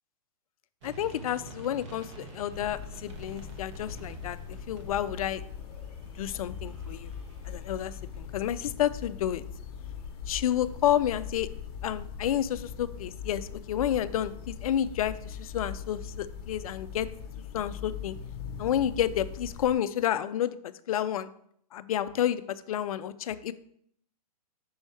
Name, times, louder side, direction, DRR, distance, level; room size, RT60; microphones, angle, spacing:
voice 1, 0.8-5.4 6.2-7.1 7.5-9.4 10.3-11.5 11.8-17.1 17.5-18.2 18.6-21.3 21.7-23.5, left 10 dB, 60° left, 14 dB, 0.5 m, -30 dB
sound 1, 0.8-8.5, right 1 dB, 45° right, 1.0 m, -48 dB
sound 2, 2.5-19.8, left 7 dB, 35° left, 1.1 m, -41 dB
5.4 x 3.4 x 5.6 m, 0.67 s
hypercardioid pair, 140°, 21 cm